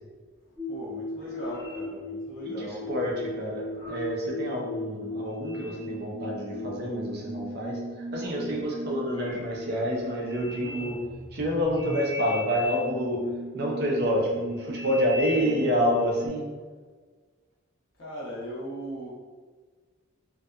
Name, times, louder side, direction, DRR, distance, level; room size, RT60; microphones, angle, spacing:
voice 1, 0.5-3.0 8.2-8.7 10.4-11.1 18.0-19.1, equal, 70° left, -6 dB, 0.8 m, -39 dB
sound 1, 0.6-16.3, left 1 dB, 20° left, 0.9 m, -37 dB
voice 2, 2.4-11.0 11.3-13.2 13.5-16.4, equal, 50° right, -3 dB, 0.5 m, -28 dB
2.7 x 2.3 x 2.3 m, 1.5 s
head